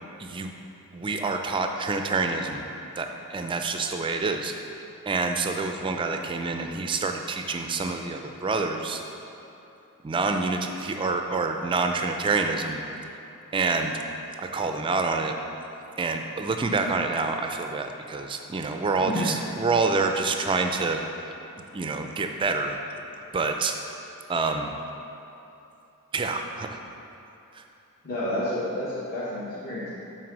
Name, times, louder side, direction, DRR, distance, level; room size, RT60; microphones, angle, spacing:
voice 1, 0.2-0.5 0.9-2.6 3.0-4.5 5.1-9.0 10.0-12.8 13.5-13.9 14.4-15.3 16.0-21.0 21.7-22.8 23.3-23.7 24.3-24.7 26.1-26.8 27.5-27.6, right 3 dB, 20° right, 5 dB, 0.3 m, -27 dB
voice 2, 19.0-19.3 28.0-29.9, left 1 dB, 40° left, -9 dB, 1.0 m, -30 dB
6.1 x 4.5 x 6.0 m, 3.0 s
head